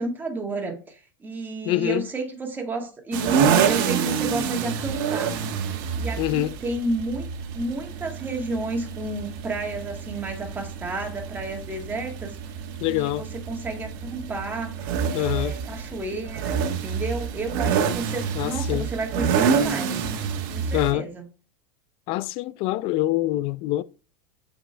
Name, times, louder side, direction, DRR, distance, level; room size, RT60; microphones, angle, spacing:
voice 1, 0.0-5.4 6.0-7.3 7.5-12.4 12.9-20.1 20.5-21.3, right 2 dB, 15° right, 1.8 m, -32 dB
voice 2, 1.6-2.1 6.2-6.6 12.8-13.2 15.1-15.5 18.3-18.9 20.7-21.1 22.1-23.8, left 15 dB, 50° left, 0.4 m, -25 dB
sound 1, 3.1-20.9, right 6 dB, 65° right, 1.4 m, -27 dB
7.5 x 4.6 x 3.4 m
supercardioid pair, 130°, 12 cm